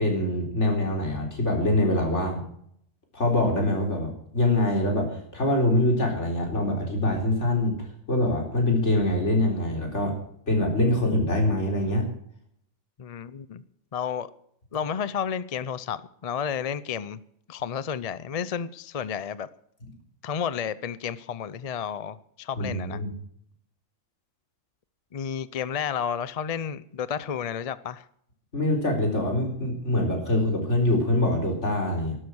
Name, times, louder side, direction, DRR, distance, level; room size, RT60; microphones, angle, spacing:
voice 1, 0.0-2.4 3.1-10.2 10.5-12.0 22.6-23.1 28.5-32.2, left 1 dB, 65° left, 2 dB, 4.1 m, -24 dB
voice 2, 13.0-13.6 13.9-14.3 14.7-17.2 17.5-19.5 20.2-23.0 25.1-28.0, left 7 dB, 45° left, 16 dB, 0.5 m, -31 dB
12.5 x 12.0 x 6.2 m, 0.68 s
omnidirectional pair, 1.3 m